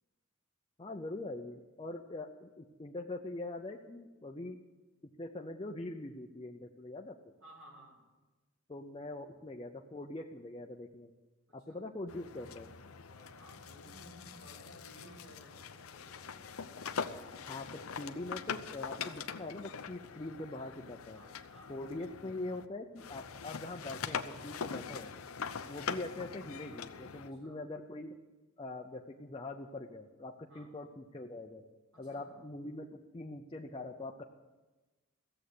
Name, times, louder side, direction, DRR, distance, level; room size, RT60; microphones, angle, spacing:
voice 1, 0.8-4.6 5.0-7.1 8.7-11.1 11.5-12.7 17.5-21.2 21.7-25.1 25.7-28.2 28.6-31.6 32.0-34.2, left 2 dB, 25° left, 1 dB, 0.6 m, -43 dB
voice 2, 7.4-8.0 11.5-11.8 13.1-16.6 21.1-21.7 25.4-25.6 27.4-27.6 30.5-30.7 32.1-32.4, right 1 dB, 70° right, -4 dB, 4.1 m, -57 dB
sound 1, 12.1-22.7 23.0-27.3, left 6 dB, 90° left, 0.7 m, -43 dB
15.0 x 7.8 x 8.5 m, 1.2 s
head